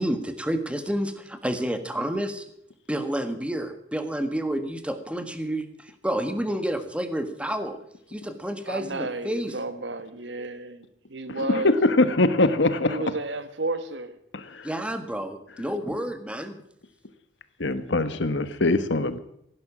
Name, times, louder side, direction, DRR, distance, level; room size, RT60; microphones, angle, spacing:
voice 1, 0.0-2.4 2.9-7.8 8.1-9.5 14.6-16.6, right 1 dB, 5° right, 8 dB, 1.6 m, -29 dB
voice 2, 8.7-11.8 12.9-14.2, right 2 dB, 80° right, 11 dB, 1.5 m, -32 dB
voice 3, 11.4-13.0 14.3-14.7 17.6-19.2, left 2 dB, 80° left, 12 dB, 1.3 m, -22 dB
17.0 x 10.5 x 7.3 m, 0.74 s
head